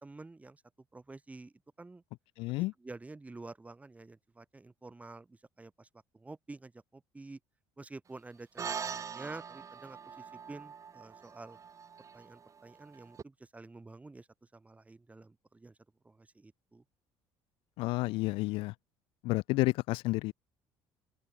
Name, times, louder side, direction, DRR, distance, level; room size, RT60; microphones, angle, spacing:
voice 1, 0.0-0.6 0.9-2.0 2.8-5.9 6.1-7.4 7.8-11.6 12.1-14.3 14.5-15.7 16.0-16.8, right 3 dB, 15° right, 4.1 m, -49 dB
voice 2, 2.4-2.7 17.8-18.7 19.2-20.3, left 21 dB, 75° left, 0.9 m, -30 dB
sound 1, 8.6-13.2, right 6 dB, 35° right, 6.8 m, -43 dB
open air
supercardioid pair, 100°, 9 cm